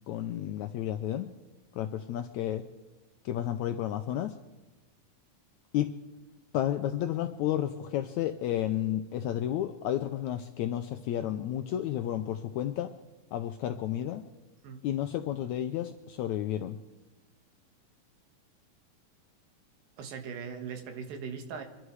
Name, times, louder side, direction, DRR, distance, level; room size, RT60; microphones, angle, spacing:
voice 1, 0.1-1.3 1.7-2.6 3.3-4.4 5.7-5.9 6.5-12.9 13.3-14.2 14.8-16.8, left 11 dB, 85° left, 7 dB, 1.7 m, -31 dB
voice 2, 20.0-21.6, right 6 dB, 90° right, 6 dB, 3.3 m, -39 dB
24.5 x 11.5 x 4.8 m, 1.1 s
omnidirectional pair, 4.0 m